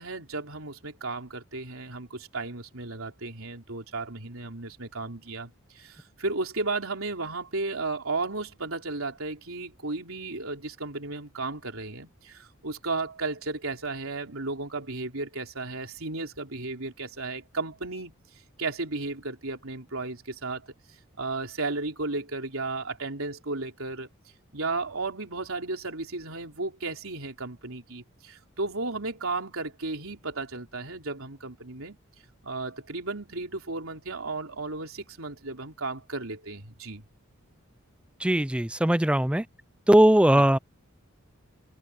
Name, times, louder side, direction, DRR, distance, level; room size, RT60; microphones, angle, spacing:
voice 1, 0.0-18.1 18.6-20.6 21.2-24.1 24.5-32.0 32.4-37.0 40.3-40.4, right 3 dB, 80° right, 3.8 m, -34 dB
voice 2, 38.2-39.4 39.9-40.6, right 1 dB, 5° right, 0.4 m, -20 dB
head